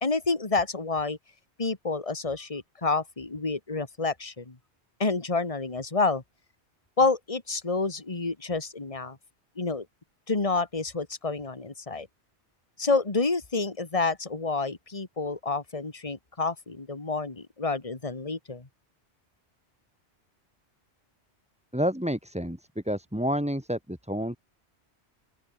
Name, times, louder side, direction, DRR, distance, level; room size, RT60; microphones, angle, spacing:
voice 1, 0.0-1.2 1.6-4.6 5.0-6.2 7.0-9.2 9.6-9.9 10.3-12.1 12.8-18.7, left 3 dB, 30° left, 2.1 m, -28 dB
voice 2, 21.7-22.6 22.9-24.4, equal, 5° right, 2.4 m, -29 dB
open air
omnidirectional pair, 1.1 m